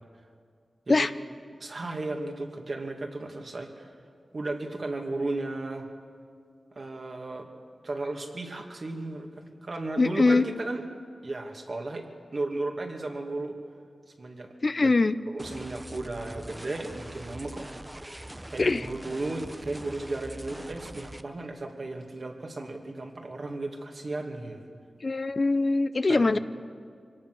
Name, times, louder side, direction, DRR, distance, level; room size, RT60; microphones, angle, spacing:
voice 1, 1.6-3.9 4.3-5.9 6.7-7.5 7.8-10.8 11.2-12.1 12.3-13.6 14.2-14.5 14.8-14.9 15.3-17.7 18.5-24.6 26.1-26.4, right 2 dB, 55° right, 2 dB, 2.5 m, -35 dB
voice 2, 10.0-10.4 14.6-15.2 18.6-18.9 25.0-26.4, left 3 dB, 50° left, 13 dB, 0.6 m, -22 dB
sound 1, 15.4-21.2, right 1 dB, 15° right, 0.9 m, -43 dB
24.0 x 18.0 x 6.3 m, 2.2 s
cardioid pair, 45°, 0 cm